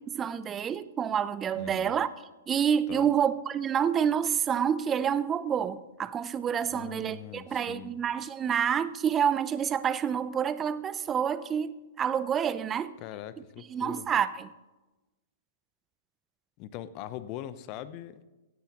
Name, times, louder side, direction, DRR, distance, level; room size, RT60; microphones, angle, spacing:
voice 1, 0.1-2.1 2.5-12.9 13.7-14.5, right 8 dB, 20° right, 0.5 m, -28 dB
voice 2, 1.5-2.0 2.9-3.1 6.7-7.9 13.0-14.1 16.6-18.2, left 12 dB, 40° left, 0.7 m, -42 dB
16.5 x 9.1 x 3.0 m
hypercardioid pair, 115°, 0 cm